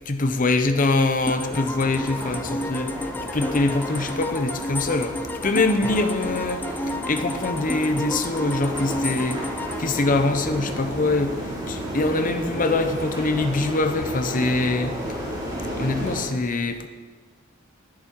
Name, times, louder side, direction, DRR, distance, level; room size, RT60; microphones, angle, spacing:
voice 1, 0.1-2.9 3.3-5.2 5.4-9.4 9.8-11.4 11.7-15.0 15.8-16.9, left 2 dB, 40° left, 7 dB, 0.8 m, -24 dB
sound 1, 1.2-16.2, equal, 20° right, 2.7 m, -33 dB
sound 2, 1.3-11.0, left 1 dB, 10° left, 0.4 m, -32 dB
11.0 x 10.5 x 4.6 m, 1.5 s
head